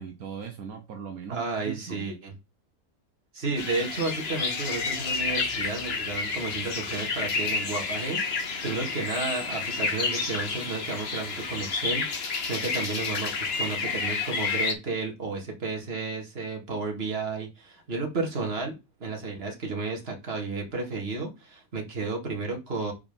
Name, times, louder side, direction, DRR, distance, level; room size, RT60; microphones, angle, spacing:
voice 1, 0.0-2.1, right 7 dB, 75° right, 1.3 m, -39 dB
voice 2, 1.3-2.3 3.3-12.0 12.4-18.7 19.0-22.9, right 3 dB, 45° right, 2.1 m, -32 dB
sound 1, 3.6-14.7, left 4 dB, 45° left, 1.3 m, -30 dB
5.3 x 4.8 x 5.4 m
omnidirectional pair, 1.6 m